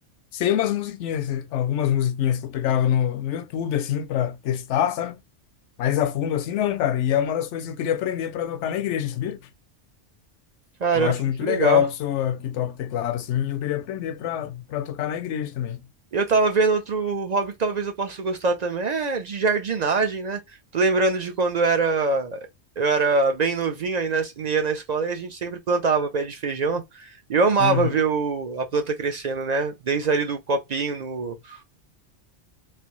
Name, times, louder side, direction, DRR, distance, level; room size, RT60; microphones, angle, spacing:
voice 1, 0.3-5.2 5.8-9.4 10.9-15.8 27.6-28.0, left 10 dB, 80° left, 0.9 m, -25 dB
voice 2, 10.8-11.1 11.4-11.8 16.1-20.4 20.7-22.5 22.8-31.7, right 4 dB, 55° right, 0.5 m, -24 dB
3.2 x 2.6 x 3.0 m
omnidirectional pair, 1.2 m